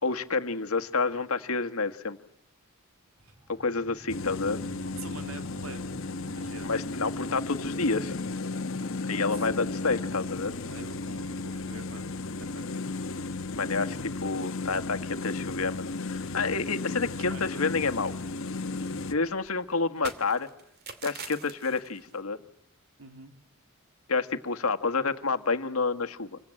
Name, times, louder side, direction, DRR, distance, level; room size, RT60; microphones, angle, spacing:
voice 1, 0.0-2.2 3.5-4.6 6.6-8.2 9.0-10.5 13.5-18.1 19.1-20.5 21.0-22.4 24.1-26.4, left 4 dB, 90° left, 7 dB, 1.6 m, -29 dB
sound 1, 3.2-13.7, equal, 20° right, 6.0 m, -52 dB
sound 2, 4.1-19.1, left 3 dB, 65° left, 1.2 m, -34 dB
voice 2, 4.9-6.7 9.3-9.5 10.6-12.0 12.4-13.5 15.2-15.3 17.1-17.8 23.0-23.3, right 2 dB, 75° right, 7 dB, 3.0 m, -46 dB
sound 3, 13.5-14.1 14.4-14.5 14.8-15.0 15.3-15.8 16.1-17.6 17.8-22.2, right 5 dB, 50° right, 2.6 m, -47 dB
28.0 x 23.5 x 8.9 m, 0.70 s
head